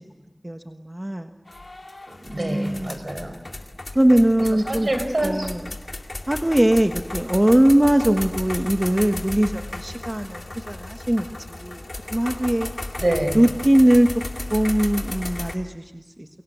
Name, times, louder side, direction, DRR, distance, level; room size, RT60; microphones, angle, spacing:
voice 1, 0.4-1.3 2.3-3.0 3.9-4.9 5.2-5.6 6.3-11.8 12.1-12.7 13.3-14.1 14.5-16.3, right 1 dB, 25° right, 5 dB, 1.3 m, -20 dB
sound 1, 1.5-15.6, left 2 dB, 75° left, 2.3 m, -34 dB
voice 2, 2.1-3.4 4.4-5.5 13.0-13.4, right 1 dB, 65° right, 7 dB, 4.8 m, -26 dB
30.0 x 23.0 x 8.1 m, 1.2 s
wide cardioid pair, 45°, 0 cm